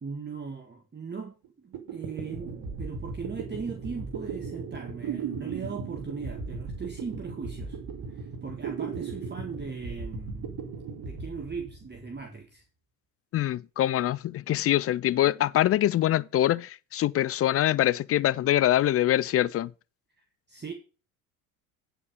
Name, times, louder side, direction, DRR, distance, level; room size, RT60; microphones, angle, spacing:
voice 1, 0.0-1.4 1.6-7.8 8.1-10.6 11.0-12.6 20.5-20.7, right 5 dB, 25° right, 1.8 m, -39 dB
sound 1, 1.4-1.5 1.7-12.2, right 5 dB, 55° right, 2.6 m, -37 dB
voice 2, 13.3-19.7, left 13 dB, 35° left, 0.4 m, -24 dB
9.4 x 5.9 x 5.3 m
hypercardioid pair, 75°, 44 cm